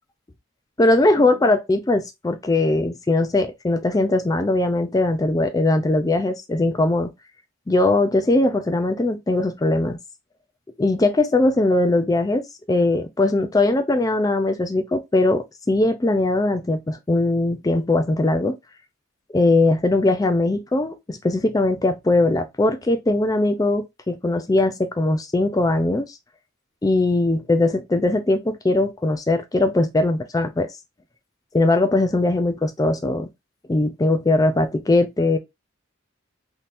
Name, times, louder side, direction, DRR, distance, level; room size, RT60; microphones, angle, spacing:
voice 1, 0.8-7.1 7.7-10.0 10.8-12.4 12.7-18.6 19.3-26.2 26.8-30.7 31.5-33.3 33.7-35.4, left 2 dB, 15° left, 0.4 m, -20 dB
3.5 x 2.8 x 2.5 m
head